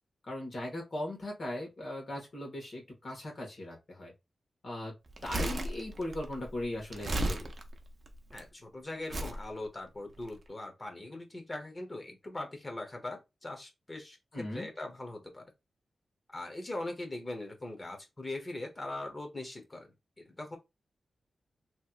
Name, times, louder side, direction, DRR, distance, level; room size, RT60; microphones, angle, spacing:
voice 1, 0.2-4.1 4.6-4.9 5.2-7.5 14.3-14.7, left 1 dB, 50° left, 1.5 m, -38 dB
Crumpling crinkling, 5.1-8.4 9.1-9.4 10.2-10.3, right 1 dB, 45° right, 0.6 m, -35 dB
voice 2, 8.3-15.4 16.3-20.6, left 2 dB, 25° left, 0.9 m, -41 dB
3.1 x 2.8 x 2.4 m
wide cardioid pair, 130°, 0 cm